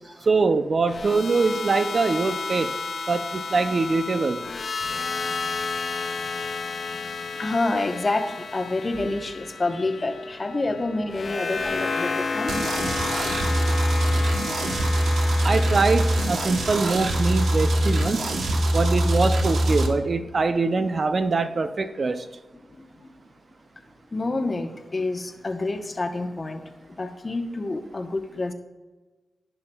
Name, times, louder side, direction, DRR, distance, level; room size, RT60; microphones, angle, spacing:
voice 1, 0.3-2.8 3.1-4.4 15.4-18.3 18.7-22.3, right 3 dB, 50° right, 10 dB, 0.4 m, -23 dB
sound 1, 0.9-19.0, left 4 dB, 55° left, 0.5 m, -32 dB
voice 2, 4.9-5.5 7.0-7.1 7.4-12.5 22.7-22.8 24.1-26.6 27.0-28.5, left 2 dB, 35° left, 5 dB, 0.9 m, -28 dB
sound 2, 12.5-19.9, right 1 dB, 75° right, 0.9 m, -23 dB
14.5 x 5.6 x 2.3 m, 1.2 s
cardioid pair, 65°, 0 cm